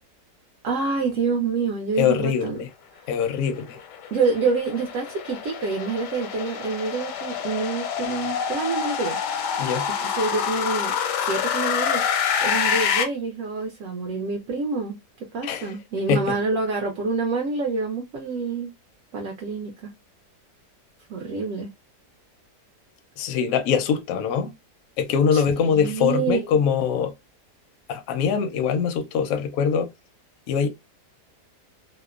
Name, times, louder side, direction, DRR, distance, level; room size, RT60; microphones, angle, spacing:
voice 1, 0.6-2.6 4.1-9.7 10.0-12.0 12.4-15.0 15.3-18.7 19.1-19.9 21.1-21.7 25.3-26.4, right 4 dB, 70° right, 0.8 m, -27 dB
voice 2, 2.0-2.7 3.1-3.8 9.6-9.9 15.4-15.7 16.1-16.3 23.2-24.5 25.0-27.1 27.9-29.9 30.5-30.7, left 7 dB, 70° left, 0.8 m, -23 dB
sound 1, 3.5-13.0, left 7 dB, 85° left, 1.2 m, -27 dB
2.8 x 2.0 x 2.3 m
omnidirectional pair, 1.8 m